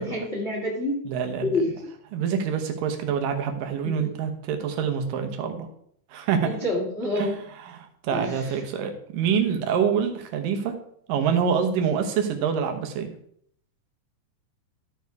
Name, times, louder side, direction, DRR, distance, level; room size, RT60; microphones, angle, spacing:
voice 1, 0.0-1.0 1.4-1.7 3.8-4.1 6.4-7.4 8.1-8.3, left 1 dB, 30° left, -3 dB, 1.4 m, -27 dB
voice 2, 1.1-1.5 2.1-5.7 6.1-6.5 7.2-10.7 11.1-13.1, right 7 dB, 85° right, 5 dB, 2.7 m, -26 dB
13.0 x 4.7 x 4.7 m, 0.66 s
omnidirectional pair, 3.8 m